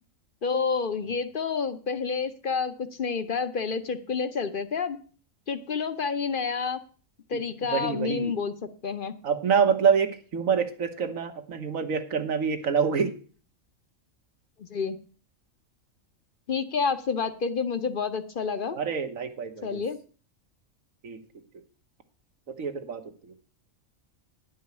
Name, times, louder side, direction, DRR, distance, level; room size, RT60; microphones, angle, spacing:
voice 1, 0.4-5.0 5.5-6.8 7.3-8.5 8.8-9.1 14.6-15.0 16.5-18.8 19.6-20.0, left 5 dB, 50° left, 11 dB, 0.8 m, -29 dB
voice 2, 7.7-8.3 9.2-13.1 18.7-19.8 21.0-21.2 22.5-23.3, right 6 dB, 85° right, 8 dB, 1.6 m, -26 dB
10.5 x 5.5 x 8.2 m, 0.41 s
omnidirectional pair, 1.4 m